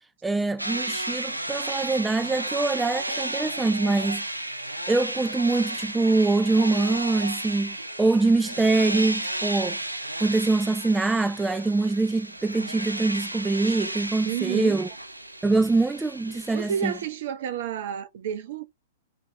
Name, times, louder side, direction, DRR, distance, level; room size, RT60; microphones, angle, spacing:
voice 1, 0.2-4.2 4.9-9.8 10.2-14.9 15.4-16.9, right 3 dB, 10° right, 0.5 m, -24 dB
sound 1, 0.6-17.1, right 1 dB, 90° right, 0.8 m, -33 dB
voice 2, 14.3-14.9 16.5-18.7, right 9 dB, 55° right, 1.2 m, -30 dB
6.4 x 3.4 x 5.7 m
figure-of-eight pair, 105°, 0 cm